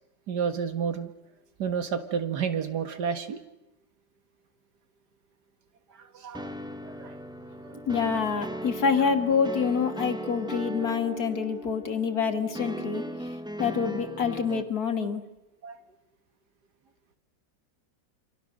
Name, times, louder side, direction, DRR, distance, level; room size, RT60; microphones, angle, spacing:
voice 1, 0.3-1.1 1.6-3.4 6.1-6.5 6.8-7.2 7.6-7.8 14.5-14.6 15.6-15.8, right 7 dB, 65° right, 9 dB, 2.3 m, -30 dB
sound 1, 6.3-14.6, right 1 dB, 5° right, 0.4 m, -38 dB
voice 2, 7.9-13.0 13.6-15.2, left 6 dB, 55° left, 6 dB, 2.3 m, -26 dB
28.5 x 25.0 x 6.7 m, 0.92 s
omnidirectional pair, 2.0 m